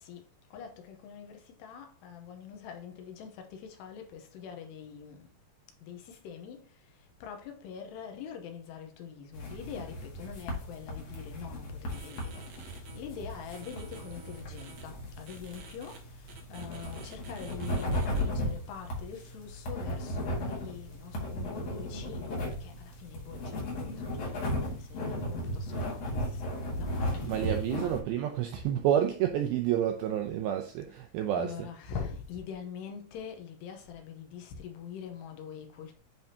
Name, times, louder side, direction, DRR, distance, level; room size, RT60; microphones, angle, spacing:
voice 1, 0.0-5.3 5.8-28.0 28.6-28.7 30.9-31.0 31.3-36.0, left 7 dB, 80° left, 2.9 m, -44 dB
sound 1, 9.3-28.0, equal, 55° left, 2.0 m, -36 dB
sound 2, 11.9-13.0 13.5-14.8 15.3-16.0 16.3-18.2, right 6 dB, 70° right, 2.9 m, -51 dB
voice 2, 27.2-31.5, right 10 dB, 90° right, 2.2 m, -29 dB
10.5 x 3.5 x 2.8 m
omnidirectional pair, 4.9 m